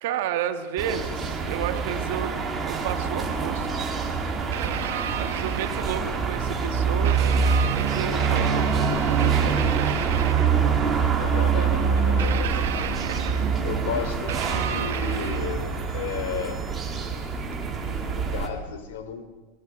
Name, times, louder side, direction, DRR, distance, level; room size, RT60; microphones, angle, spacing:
voice 1, 0.0-3.9 5.2-10.0, right 9 dB, 60° right, 7 dB, 1.8 m, -32 dB
sound 1, 0.8-18.5, right 5 dB, 15° right, 2.2 m, -25 dB
sound 2, 1.2-1.3 2.1-2.2 3.9-4.0 4.5-6.2 7.0-10.7 12.2-13.7 14.3-15.8 17.5-17.6, right 11 dB, 85° right, 1.6 m, -33 dB
voice 2, 11.2-12.6 13.6-16.6 17.8-19.2, left 7 dB, 75° left, 10 dB, 3.2 m, -34 dB
22.0 x 20.5 x 6.7 m, 1.3 s
supercardioid pair, 170°, 0 cm